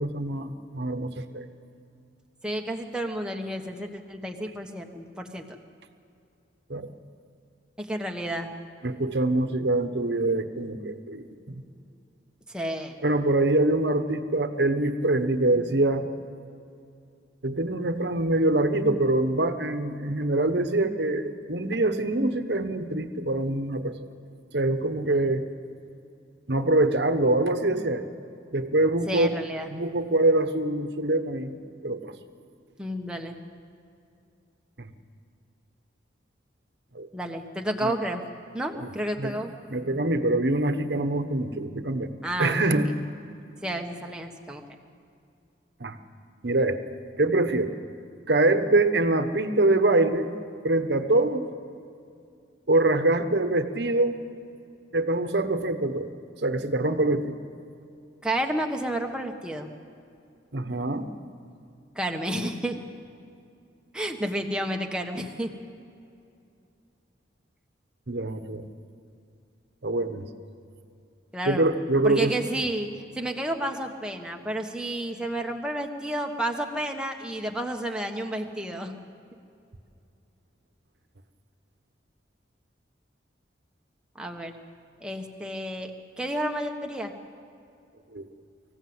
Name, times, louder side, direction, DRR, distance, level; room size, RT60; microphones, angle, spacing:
voice 1, 0.0-1.5 6.7-6.9 8.8-11.6 13.0-16.1 17.4-24.1 24.5-25.4 26.5-28.1 28.5-29.3 29.7-31.6 31.8-32.1 34.8-34.9 36.9-37.1 37.8-37.9 38.8-38.9 39.2-39.4 39.7-42.1 42.4-42.9 45.8-46.0 46.4-46.8 47.2-47.8 48.3-50.3 50.6-51.5 52.7-54.2 54.9-56.1 56.4-57.4 60.5-61.1 68.1-68.7 69.8-70.3 71.4-72.4 88.1-88.3, right 2 dB, 65° right, 9 dB, 1.2 m, -24 dB
voice 2, 2.4-5.4 7.8-8.5 12.5-13.0 29.1-29.7 32.8-33.3 37.1-38.2 38.5-39.5 42.2-42.7 43.6-44.6 58.2-59.7 61.9-62.8 63.9-65.5 71.3-71.7 72.0-72.9 73.1-78.9 84.2-84.5 85.0-85.9 86.2-87.1, right 1 dB, 5° right, 2 dB, 1.3 m, -31 dB
25.0 x 15.5 x 8.0 m, 2.5 s
head